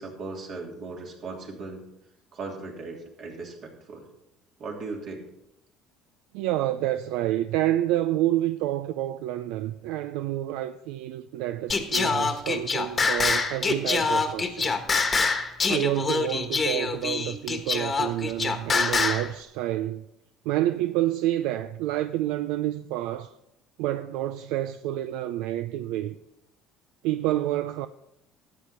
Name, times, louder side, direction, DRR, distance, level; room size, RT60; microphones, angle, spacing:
voice 1, 0.0-1.8 2.3-4.1 4.6-5.3, right 3 dB, 55° right, 3.0 m, -38 dB
voice 2, 6.3-14.8 15.7-20.1 20.4-23.4 23.8-26.2 27.0-27.9, right 13 dB, 80° right, 0.4 m, -28 dB
Singing, 11.7-19.3, left 4 dB, 25° left, 1.3 m, -25 dB
13.0 x 8.6 x 4.3 m
cardioid pair, 105°, 0 cm